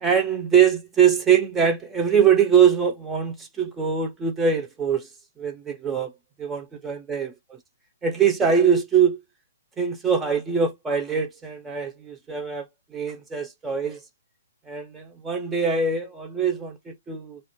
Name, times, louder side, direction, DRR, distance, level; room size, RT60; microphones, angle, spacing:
voice 1, 0.0-5.1 5.4-6.1 6.4-7.3 8.0-9.2 9.8-12.7 12.9-14.0 14.7-17.4, right 7 dB, 10° right, 0.3 m, -22 dB
2.7 x 2.1 x 2.7 m
hypercardioid pair, 170°, 0 cm